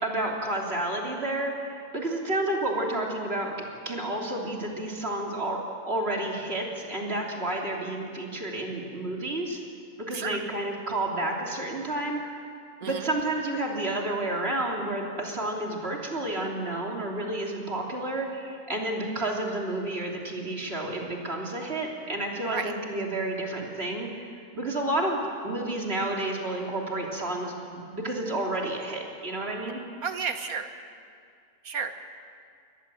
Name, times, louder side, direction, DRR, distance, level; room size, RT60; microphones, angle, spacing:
voice 1, 0.0-3.5 3.8-9.6 10.0-12.4 12.8-29.8, right 1 dB, 40° right, -1 dB, 3.4 m, -30 dB
voice 2, 10.1-10.4 12.8-13.1 22.5-22.7 30.0-30.7 31.6-31.9, right 6 dB, 70° right, 8 dB, 1.7 m, -32 dB
22.5 x 19.0 x 7.7 m, 2.3 s
omnidirectional pair, 1.6 m